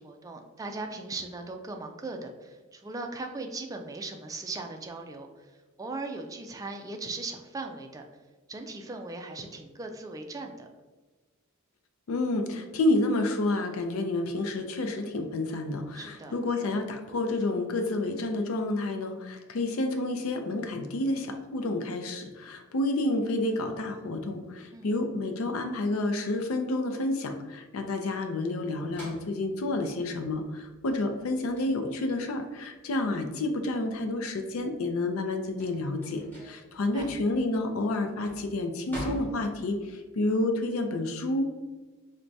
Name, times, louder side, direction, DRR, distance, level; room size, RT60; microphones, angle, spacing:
voice 1, 0.0-5.5 5.8-8.0 8.5-10.7 15.9-16.4 24.7-24.9 36.7-37.1, right 3 dB, 15° right, 4 dB, 0.3 m, -39 dB
voice 2, 12.1-41.5, left 2 dB, 85° left, 5 dB, 0.5 m, -29 dB
sound 1, 28.9-34.0 34.4-40.0, equal, 10° left, 1.3 m, -44 dB
4.4 x 2.2 x 2.6 m, 1.2 s
head